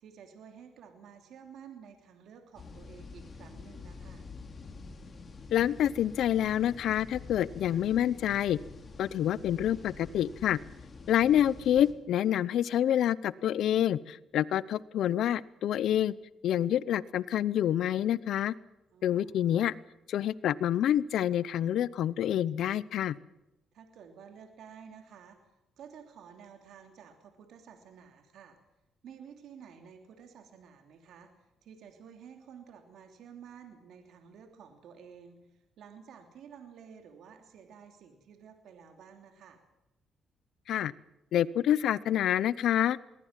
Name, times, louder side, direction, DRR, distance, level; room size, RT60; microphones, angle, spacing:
voice 1, 0.0-4.3 18.9-19.4 23.7-28.6 29.0-39.6, right 7 dB, 75° right, 4 dB, 3.0 m, -52 dB
sound 1, 2.6-11.9, left 4 dB, 40° left, 3.9 m, -47 dB
voice 2, 5.5-8.6 9.0-10.6 11.1-16.1 16.4-18.5 19.0-19.7 20.1-23.2 40.7-40.9 41.3-43.0, left 11 dB, 75° left, 19 dB, 0.7 m, -27 dB
22.0 x 19.0 x 7.5 m, 0.94 s
cardioid pair, 90°, 0 cm